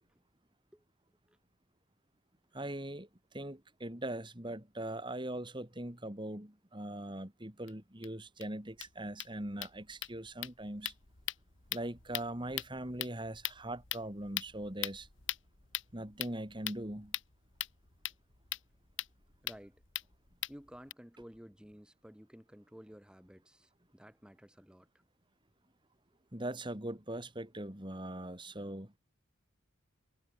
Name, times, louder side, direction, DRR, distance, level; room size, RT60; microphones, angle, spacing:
voice 1, 2.5-10.9 11.7-15.1 15.9-17.1 26.3-28.9, right 1 dB, 25° right, 2.7 m, -41 dB
sound 1, 7.7-7.8 8.0-8.1 8.4-8.5 8.7-20.9, left 13 dB, 65° left, 2.4 m, -42 dB
voice 2, 19.4-19.8 20.5-24.9, equal, 5° right, 1.7 m, -54 dB
head